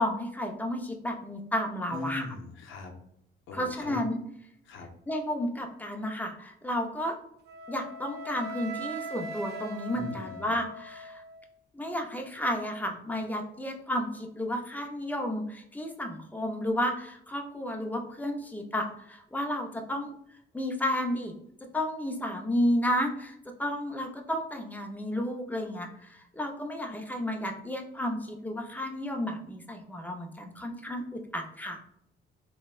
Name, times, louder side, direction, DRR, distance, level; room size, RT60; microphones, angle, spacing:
voice 1, 0.0-2.3 3.5-4.2 5.1-7.1 7.7-11.2 11.7-20.1 20.5-21.3 21.7-31.8, equal, 10° left, 3 dB, 0.5 m, -32 dB
voice 2, 1.9-2.9 3.5-4.0 4.7-4.9 9.9-10.6, left 3 dB, 80° left, 4 dB, 0.6 m, -39 dB
Wind instrument woodwind instrument, 7.5-11.5, right 2 dB, 55° right, 0.6 m, -40 dB
3.3 x 2.1 x 2.3 m, 0.71 s
cardioid pair, 90°, 20 cm